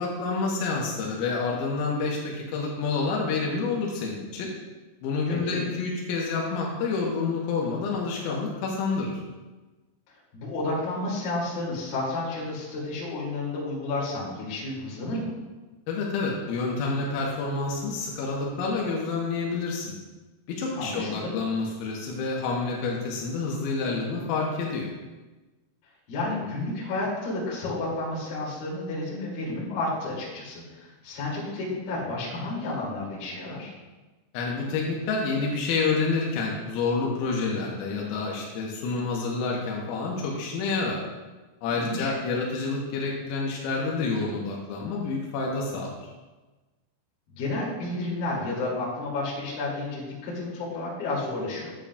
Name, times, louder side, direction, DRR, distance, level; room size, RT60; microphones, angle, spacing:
voice 1, 0.0-4.5 5.0-9.2 15.9-20.0 20.5-24.9 34.3-41.0 41.6-45.9, left 4 dB, 85° left, -2 dB, 3.7 m, -28 dB
voice 2, 5.3-5.6 10.3-15.3 20.7-21.3 26.1-33.7 41.7-42.1 47.3-51.7, left 2 dB, 50° left, -6 dB, 3.8 m, -31 dB
11.5 x 8.6 x 2.3 m, 1.2 s
omnidirectional pair, 6.0 m